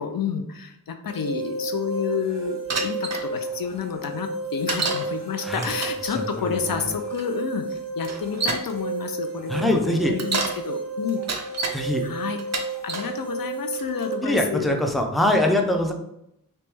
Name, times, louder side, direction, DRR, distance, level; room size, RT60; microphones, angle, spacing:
voice 1, 0.0-11.2 11.6-11.7 12.0-12.4 12.8-14.8, left 7 dB, 75° left, 6 dB, 0.5 m, -30 dB
sound 1, 1.1-14.1, right 3 dB, 50° left, 1.4 m, -32 dB
Bicycle, 2.7-3.2 4.7-5.1 5.6-6.0 7.1-7.2 8.0-8.7 10.0-10.6 11.1-11.8 12.4-13.1 13.7-14.1, right 3 dB, 50° right, 0.6 m, -28 dB
voice 2, 6.4-6.9 9.5-10.1 11.7-12.0 14.2-15.9, left 1 dB, ahead, 2 dB, 0.6 m, -23 dB
3.1 x 3.0 x 3.4 m, 0.78 s
wide cardioid pair, 45°, 35 cm